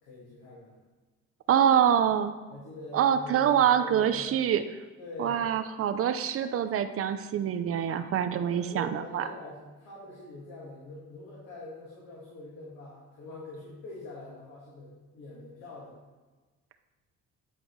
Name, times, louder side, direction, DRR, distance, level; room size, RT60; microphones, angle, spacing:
voice 1, 0.0-0.8 2.5-4.4 5.0-5.5 8.0-16.0, left 2 dB, 85° left, -6 dB, 2.0 m, -44 dB
voice 2, 1.5-2.3 2.9-4.6 5.2-9.2, right 9 dB, 50° right, 10 dB, 0.5 m, -25 dB
9.8 x 4.9 x 3.1 m, 1.2 s
cardioid pair, 100°, 29 cm